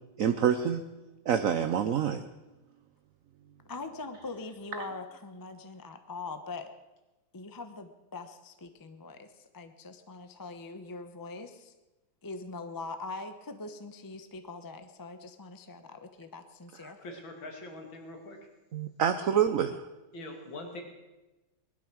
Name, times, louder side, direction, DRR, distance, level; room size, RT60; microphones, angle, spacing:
voice 1, 0.2-0.8 1.3-2.3 16.8-16.9 18.7-19.9, right 8 dB, 65° right, 9 dB, 0.8 m, -27 dB
voice 2, 3.7-6.7 7.3-11.7 12.2-17.0, left 3 dB, 20° left, 8 dB, 0.5 m, -42 dB
voice 3, 17.0-18.4 20.1-20.8, left 2 dB, 75° left, 3 dB, 3.1 m, -43 dB
20.0 x 12.0 x 6.2 m, 1.1 s
omnidirectional pair, 2.1 m